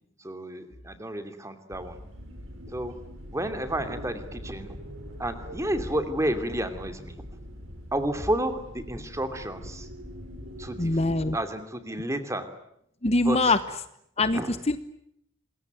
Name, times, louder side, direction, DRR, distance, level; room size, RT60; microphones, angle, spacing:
voice 1, 0.2-2.0 2.7-3.0 3.3-4.8 5.2-7.3 7.9-9.9 10.6-11.0 11.3-12.5 13.2-13.6 14.3-14.5, right 1 dB, 15° right, 8 dB, 2.7 m, -31 dB
sound 1, 1.7-11.3, equal, 80° right, 6.0 m, -42 dB
voice 2, 10.8-11.4 13.0-13.6 14.2-14.4 14.7-14.8, left 2 dB, 30° left, 12 dB, 1.0 m, -22 dB
27.0 x 22.0 x 9.2 m, 0.74 s
head